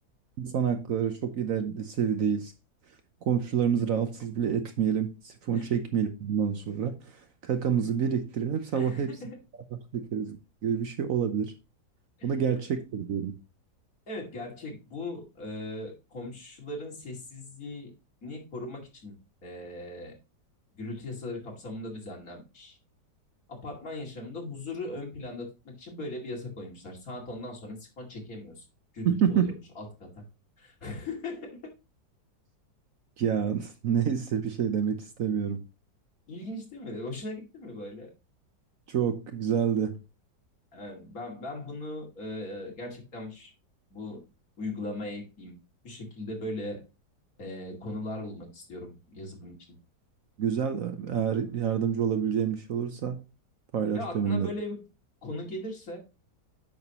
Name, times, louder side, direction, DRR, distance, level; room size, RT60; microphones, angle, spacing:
voice 1, 0.4-2.5 3.3-6.9 7.4-9.1 9.7-10.4 10.6-11.5 12.2-13.3 29.0-29.5 33.2-35.6 38.9-39.9 50.4-53.2 53.7-54.5, right 8 dB, 60° right, 1.1 m, -28 dB
voice 2, 8.7-9.4 12.2-12.3 14.1-17.9 18.2-19.1 19.4-20.1 20.7-22.8 23.5-28.6 28.9-30.2 30.6-31.7 36.3-38.1 40.7-43.5 43.9-44.2 44.6-45.6 45.8-46.8 47.4-49.5 53.9-54.8 55.2-56.0, left 2 dB, 55° left, 2.8 m, -39 dB
8.9 x 6.2 x 2.9 m
omnidirectional pair, 1.8 m